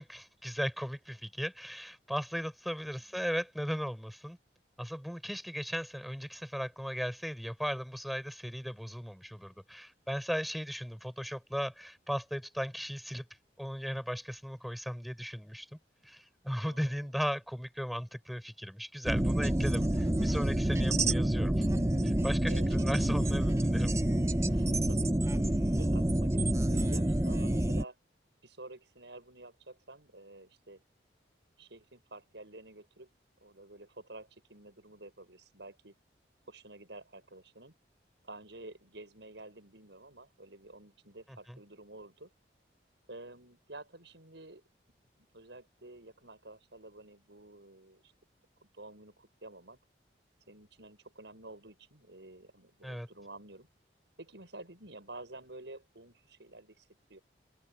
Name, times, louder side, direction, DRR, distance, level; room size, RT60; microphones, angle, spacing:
voice 1, 0.0-4.4 4.8-13.3 13.6-15.8 16.0-21.6 22.0-23.9 52.8-53.1, equal, ahead, 5.3 m, -37 dB
voice 2, 16.6-17.1 22.5-23.2 24.5-28.0 28.4-30.8 31.6-33.1 33.4-35.9 36.5-37.7 38.2-42.3 43.1-44.6 45.2-48.1 48.6-49.8 50.5-53.7 54.2-57.2, right 2 dB, 80° right, 6.5 m, -50 dB
sound 1, 19.0-27.8, right 1 dB, 15° right, 0.7 m, -28 dB
open air
head